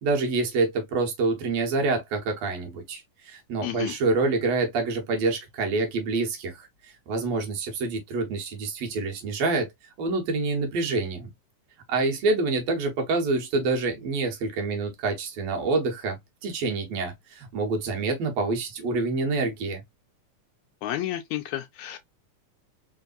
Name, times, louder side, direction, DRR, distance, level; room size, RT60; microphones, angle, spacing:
voice 1, 0.0-9.7 10.0-11.3 11.9-19.8, right 3 dB, 65° right, 2.0 m, -27 dB
voice 2, 3.6-4.0 20.8-22.0, left 13 dB, 80° left, 1.8 m, -31 dB
4.6 x 3.3 x 2.4 m
omnidirectional pair, 3.5 m